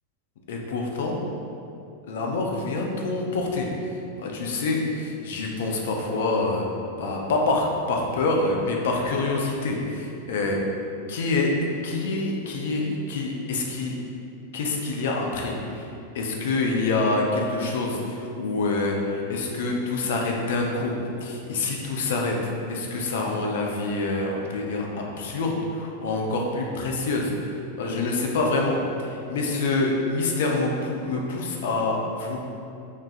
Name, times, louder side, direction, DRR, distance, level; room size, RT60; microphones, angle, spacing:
voice 1, 0.5-1.2 2.1-6.6 7.0-10.6 11.1-11.5 11.8-14.0 14.5-15.9 16.1-20.9 21.2-22.4 22.7-27.3 27.8-32.4, left 3 dB, 55° left, 0 dB, 0.3 m, -26 dB
2.4 x 2.3 x 2.3 m, 2.6 s
figure-of-eight pair, 90°, 0 cm